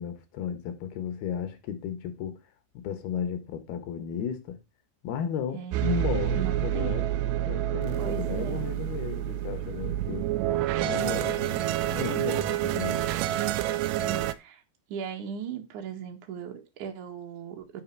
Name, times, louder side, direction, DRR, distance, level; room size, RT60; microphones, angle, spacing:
voice 1, 0.0-2.4 2.7-4.6 5.0-7.1 7.5-10.3 10.8-13.1, left 8 dB, 70° left, 3.0 m, -34 dB
voice 2, 5.5-7.1 8.0-8.7 14.0-14.6 14.9-17.8, right 7 dB, 60° right, 2.3 m, -38 dB
sound 1, 5.7-14.3, right 13 dB, 80° right, 2.6 m, -28 dB
10.0 x 6.1 x 4.6 m
omnidirectional pair, 5.2 m